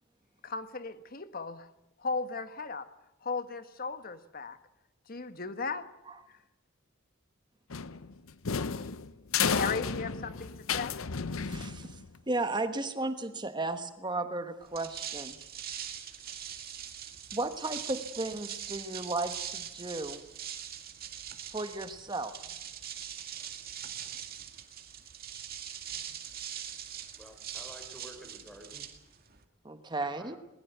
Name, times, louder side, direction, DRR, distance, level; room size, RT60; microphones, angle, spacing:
voice 1, 0.4-1.7 2.0-2.9 3.2-4.6 5.1-5.8 6.3-6.4 9.4-11.0, left 4 dB, 45° left, 11 dB, 1.3 m, -36 dB
sound 1, 7.7-12.2, left 6 dB, 80° left, 0.8 m, -32 dB
voice 2, 11.4-12.0 12.3-15.4 17.3-20.2 21.5-22.3 29.6-30.4, right 2 dB, 20° right, 9 dB, 1.2 m, -34 dB
sound 2, 14.6-29.4, right 9 dB, 45° right, 2.2 m, -42 dB
voice 3, 27.1-28.8 30.0-30.4, equal, 5° left, 5 dB, 3.9 m, -51 dB
22.0 x 20.5 x 8.0 m, 0.90 s
head